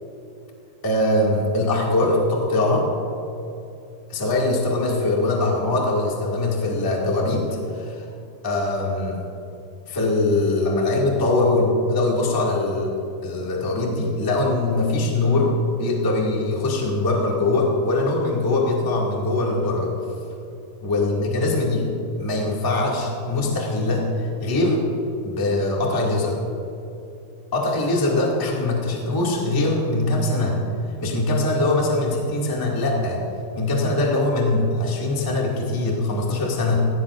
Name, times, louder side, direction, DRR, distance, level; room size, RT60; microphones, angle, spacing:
voice 1, 0.8-2.9 4.1-8.1 8.4-9.2 9.9-12.9 13.2-19.9 20.8-21.8 22.2-24.8 25.2-26.4 27.5-30.6 31.0-33.2 33.5-36.8, left 2 dB, 15° left, -3 dB, 0.7 m, -22 dB
16.0 x 15.0 x 2.5 m, 2.9 s
omnidirectional pair, 4.4 m